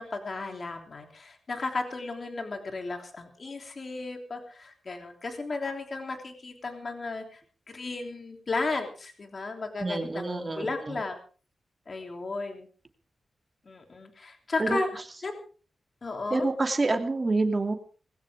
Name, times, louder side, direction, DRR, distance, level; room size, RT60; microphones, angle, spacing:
voice 1, 0.0-7.4 7.7-11.2 11.9-12.7 13.6-14.9 15.2-15.4 16.0-16.5, left 3 dB, 45° left, 4 dB, 3.3 m, -34 dB
voice 2, 9.8-11.0 14.6-14.8 16.3-17.7, right 3 dB, 30° right, 5 dB, 2.7 m, -27 dB
21.0 x 16.0 x 3.7 m, 0.39 s
cardioid pair, 85°, 0 cm